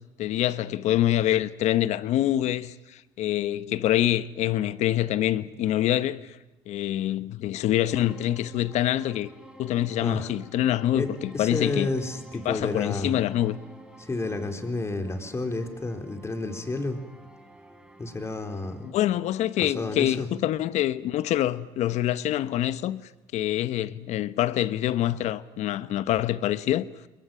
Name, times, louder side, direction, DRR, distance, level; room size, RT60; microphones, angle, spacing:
voice 1, 0.2-6.4 6.7-9.3 9.6-11.9 12.4-13.6 18.8-23.0 23.3-26.9, left 13 dB, 65° left, 1.1 m, -25 dB
sound 1, 7.9-18.9, right 1 dB, 5° right, 3.9 m, -49 dB
voice 2, 10.9-13.2 14.0-17.0 18.0-18.9 19.6-20.3, left 2 dB, 20° left, 4.3 m, -31 dB
28.0 x 21.5 x 9.1 m
supercardioid pair, 80°, 13 cm